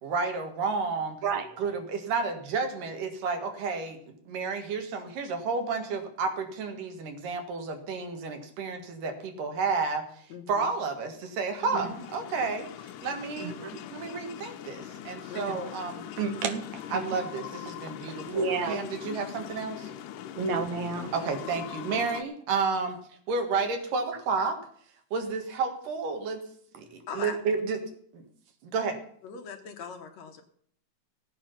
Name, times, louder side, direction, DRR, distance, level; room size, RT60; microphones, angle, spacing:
voice 1, 0.0-1.2 1.6-4.0 4.3-10.1 10.5-12.7 13.0-13.6 13.9-16.1 16.9-19.9 21.1-23.0 23.3-24.6 25.1-26.4 26.7-27.8 28.1-28.2 28.6-29.0, right 4 dB, 90° right, 5 dB, 3.3 m, -31 dB
voice 2, 1.2-1.6 11.7-11.9 13.4-13.7 15.5-15.6 16.2-17.2 18.3-18.8 20.4-21.3, right 4 dB, 65° right, 8 dB, 2.3 m, -31 dB
voice 3, 10.3-10.7 11.6-12.0 15.3-15.4 19.0-19.2 27.1-27.4 29.2-30.4, left 6 dB, 65° left, 5 dB, 2.2 m, -40 dB
sound 1, 11.5-22.2, left 10 dB, 90° left, 2.4 m, -42 dB
16.0 x 9.2 x 5.8 m, 0.63 s
omnidirectional pair, 3.7 m